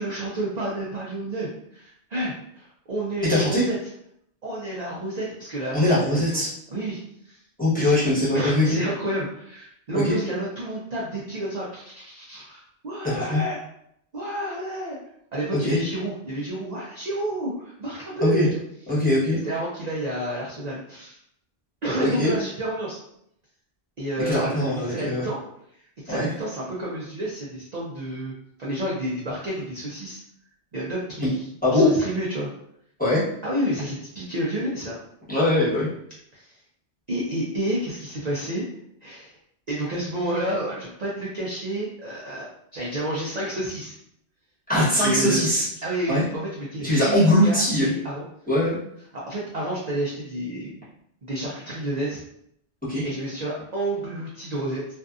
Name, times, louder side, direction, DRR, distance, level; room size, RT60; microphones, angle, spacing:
voice 1, 0.0-3.8 4.4-6.4 6.7-7.4 7.8-8.0 8.3-13.6 14.1-15.0 15.3-18.5 18.9-19.0 19.4-21.2 21.8-23.0 24.0-25.4 26.0-28.3 28.6-30.2 30.7-32.5 33.4-35.0 36.3-36.5 37.1-38.7 39.0-39.4 39.7-44.0 44.7-45.5 45.8-48.2 49.1-50.9 51.2-52.2 53.0-54.9, right 1 dB, 50° right, -5 dB, 0.5 m, -30 dB
voice 2, 3.3-3.6 5.7-6.5 7.6-8.8 9.9-10.2 13.1-13.4 15.6-15.8 18.2-18.5 18.9-19.4 22.0-22.3 24.2-25.3 26.1-26.3 31.2-31.3 31.6-31.9 33.0-33.2 35.3-35.9 44.7-45.6 46.1-46.2 46.8-47.9 48.5-48.8 52.9-53.0, left 1 dB, 10° left, -10 dB, 1.0 m, -21 dB
2.6 x 2.5 x 2.3 m, 0.73 s
omnidirectional pair, 1.2 m